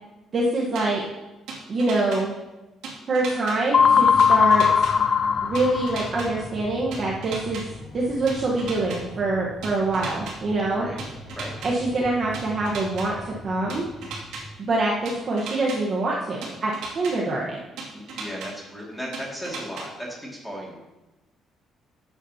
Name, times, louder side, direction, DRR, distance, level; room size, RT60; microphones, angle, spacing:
voice 1, 0.3-1.0 1.7-2.3 3.1-4.9 5.4-7.7 7.9-10.9 11.6-13.9 14.6-17.6, right 2 dB, 35° right, -4 dB, 1.2 m, -25 dB
sound 1, 0.7-0.8 1.5-2.2 2.8-3.6 4.2-4.9 5.5-6.3 6.9-7.6 8.3-9.0 9.6-10.3 11.0-11.7 12.3-13.1 13.7-14.4 15.0-15.8 16.4-17.1 17.8-18.5 19.1-19.8, right 4 dB, 85° right, 2.4 m, -35 dB
sound 2, 3.7-14.5, left 1 dB, 60° left, 2.2 m, -40 dB
sound 3, 3.7-6.3, left 6 dB, 35° left, 0.3 m, -19 dB
voice 2, 17.9-20.8, equal, ahead, -3 dB, 2.2 m, -36 dB
13.0 x 8.2 x 2.8 m, 1.1 s
cardioid pair, 150°, 0 cm